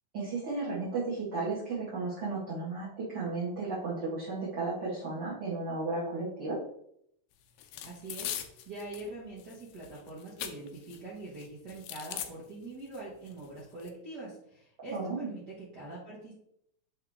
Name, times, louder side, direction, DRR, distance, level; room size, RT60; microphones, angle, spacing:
voice 1, 0.1-6.6 14.9-15.3, right 3 dB, 40° right, -9 dB, 1.8 m, -34 dB
sound 1, 7.6-9.1 9.4-11.0 11.3-12.3 12.9-13.0 13.3-13.9, left 11 dB, 80° left, 2.0 m, -40 dB
voice 2, 7.8-8.3 8.6-16.3, right 2 dB, 75° right, -6 dB, 0.9 m, -43 dB
7.5 x 3.7 x 3.6 m, 0.72 s
omnidirectional pair, 4.2 m